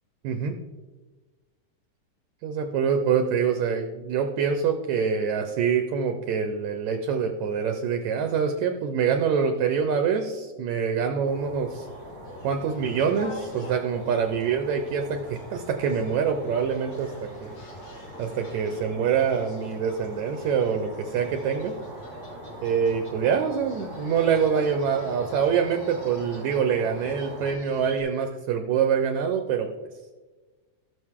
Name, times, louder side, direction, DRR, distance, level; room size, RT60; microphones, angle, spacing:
voice 1, 0.2-0.6 2.4-11.9 12.4-17.6 18.2-21.8 22.6-29.7, right 6 dB, 75° right, 6 dB, 1.8 m, -25 dB
sound 1, 11.2-27.5, right 1 dB, 35° right, 1.3 m, -42 dB
sound 2, 11.7-28.0, left 2 dB, 50° left, 2.2 m, -46 dB
18.0 x 6.2 x 3.6 m, 1.3 s
omnidirectional pair, 3.9 m